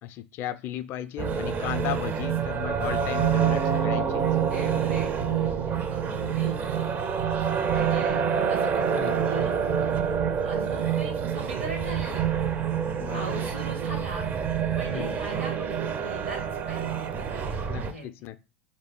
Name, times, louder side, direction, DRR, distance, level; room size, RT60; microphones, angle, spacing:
voice 1, 0.0-4.2 6.1-6.4 9.0-9.3 13.0-13.5 14.9-15.2 17.7-18.4, left 11 dB, 40° left, 0.3 m, -35 dB
sound 1, 1.2-17.9, right 7 dB, 30° right, 0.4 m, -27 dB
voice 2, 4.5-6.6 7.7-8.2 8.5-9.5 10.4-12.3 13.1-14.3 14.7-16.4 16.7-18.0, right 2 dB, 80° right, 1.4 m, -40 dB
3.2 x 2.6 x 3.7 m
figure-of-eight pair, 80°, 6 cm